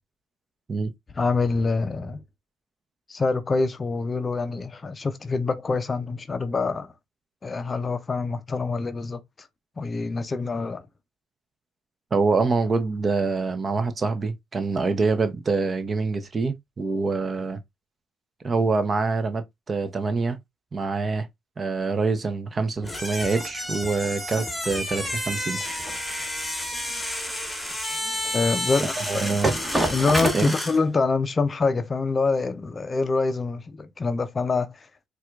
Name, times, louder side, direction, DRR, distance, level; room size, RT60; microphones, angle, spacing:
voice 1, 1.2-2.2 3.1-6.9 7.4-9.5 9.8-10.8 28.3-29.4 29.9-34.9, left 4 dB, 30° left, 0.5 m, -25 dB
voice 2, 12.1-17.6 18.4-20.4 20.7-21.3 21.6-25.6 29.0-29.5 30.3-30.5, right 4 dB, 35° right, 0.6 m, -25 dB
sound 1, 22.8-30.8, left 1 dB, 5° left, 1.3 m, -31 dB
sound 2, 23.2-30.3, right 1 dB, 20° right, 1.2 m, -30 dB
4.2 x 2.3 x 2.4 m
supercardioid pair, 75°, 0 cm